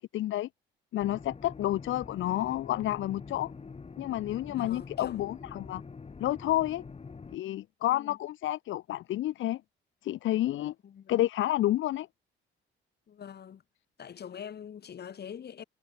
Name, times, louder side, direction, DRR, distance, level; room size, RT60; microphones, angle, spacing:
voice 1, 0.1-0.5 0.9-3.5 4.0-5.8 6.2-6.8 7.3-9.6 10.0-10.7 11.1-12.1, left 14 dB, 75° left, 1.0 m, -30 dB
sound 1, 1.0-7.4, left 4 dB, 30° left, 2.5 m, -45 dB
voice 2, 4.5-5.2 7.9-8.2 10.8-11.1 13.1-13.6 14.0-15.6, left 8 dB, 55° left, 4.0 m, -44 dB
cardioid pair, 90°, 20 cm